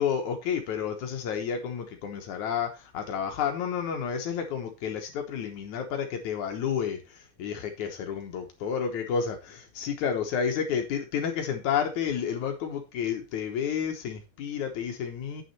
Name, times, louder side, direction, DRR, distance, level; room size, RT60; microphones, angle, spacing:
voice 1, 0.0-15.4, left 7 dB, 70° left, 1.9 m, -30 dB
9.2 x 6.3 x 4.2 m
omnidirectional pair, 5.0 m